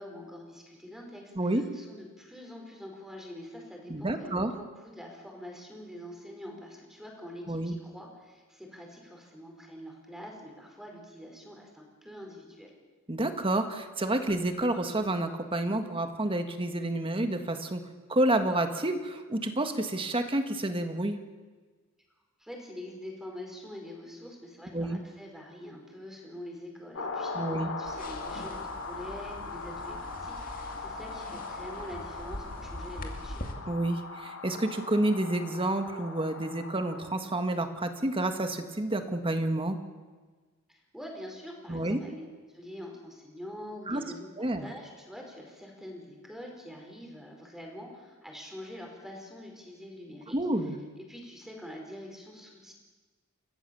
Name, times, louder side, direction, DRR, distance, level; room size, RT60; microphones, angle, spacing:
voice 1, 0.0-12.7 22.4-33.4 40.7-50.4 51.0-52.7, left 1 dB, ahead, 0 dB, 4.9 m, -45 dB
voice 2, 3.9-4.5 7.5-7.7 13.1-17.8 18.1-21.2 24.7-25.0 27.3-27.7 33.7-39.8 41.7-42.0 43.9-44.0 44.4-44.7 50.3-50.8, right 1 dB, 25° right, 7 dB, 1.7 m, -29 dB
sound 1, 26.9-37.1, left 3 dB, 80° left, 2.6 m, -40 dB
sound 2, 27.8-33.5, left 1 dB, 45° left, 2.3 m, -43 dB
29.5 x 14.5 x 7.1 m, 1.4 s
head